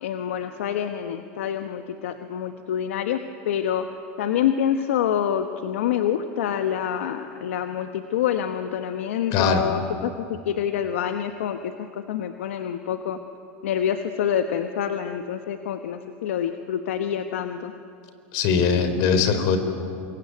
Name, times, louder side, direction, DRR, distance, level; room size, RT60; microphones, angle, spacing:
voice 1, 0.0-3.2 3.4-3.9 4.2-11.7 12.1-13.2 13.6-17.7, left 9 dB, 85° left, 7 dB, 1.2 m, -26 dB
voice 2, 9.3-9.6 18.3-19.6, left 5 dB, 65° left, 9 dB, 3.9 m, -21 dB
27.0 x 22.5 x 9.5 m, 2.5 s
hypercardioid pair, 100°, 7 cm